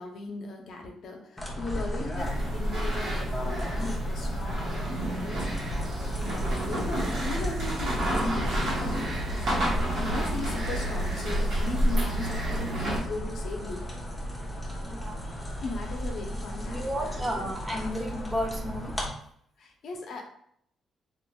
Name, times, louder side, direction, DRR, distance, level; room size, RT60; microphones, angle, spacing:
voice 1, 0.0-5.5 6.1-9.4 10.0-13.8 15.6-17.5 19.6-20.2, left 3 dB, 65° left, 2 dB, 0.6 m, -38 dB
sound 1, 1.4-19.1, equal, 15° left, 0.8 m, -35 dB
sound 2, 2.2-13.0, right 1 dB, 70° right, 1.2 m, -30 dB
voice 2, 10.0-10.3 14.8-15.3 16.7-19.0, equal, 20° right, 1 dB, 0.6 m, -33 dB
2.8 x 2.4 x 2.2 m, 0.67 s
cardioid pair, 90°, 0 cm